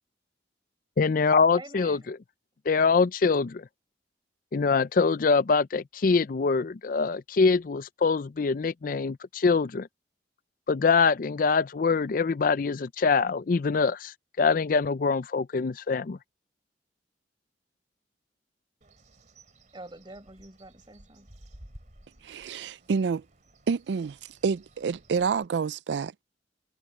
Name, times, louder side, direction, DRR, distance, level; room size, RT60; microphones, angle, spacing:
voice 1, 1.0-2.2 2.7-3.7 4.5-9.9 10.7-16.2, left 4 dB, 50° left, 0.4 m, -24 dB
voice 2, 1.5-2.1 19.7-21.3, right 2 dB, 30° right, 4.5 m, -46 dB
Bird, 18.8-25.5, right 1 dB, 45° right, 3.1 m, -54 dB
voice 3, 22.2-23.2 23.7-24.2 24.4-26.2, right 5 dB, 80° right, 0.4 m, -28 dB
head